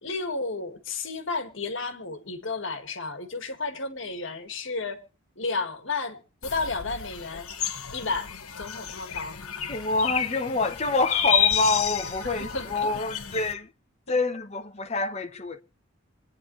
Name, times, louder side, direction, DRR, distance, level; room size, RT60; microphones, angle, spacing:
voice 1, 0.0-5.0 5.4-7.5 7.9-9.7 12.5-12.9 14.1-14.2, left 3 dB, 60° left, 1.8 m, -32 dB
sound 1, 6.4-13.5, left 8 dB, 85° left, 1.4 m, -30 dB
voice 2, 9.7-13.7 14.1-15.6, left 3 dB, 30° left, 1.0 m, -27 dB
26.5 x 9.8 x 3.2 m
head